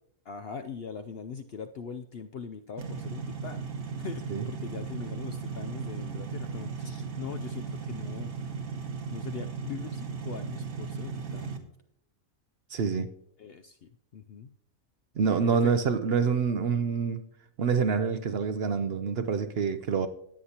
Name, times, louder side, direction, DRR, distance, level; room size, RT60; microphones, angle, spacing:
voice 1, 0.3-3.7 4.0-8.4 9.1-11.7 13.4-14.5 15.4-15.7, left 6 dB, 65° left, 7 dB, 0.6 m, -41 dB
sound 1, 2.8-11.6, right 5 dB, 75° right, 1.7 m, -36 dB
voice 2, 12.7-13.1 15.2-17.3 17.6-20.1, right 6 dB, 60° right, 10 dB, 0.7 m, -26 dB
18.0 x 8.0 x 2.9 m, 0.71 s
omnidirectional pair, 1.5 m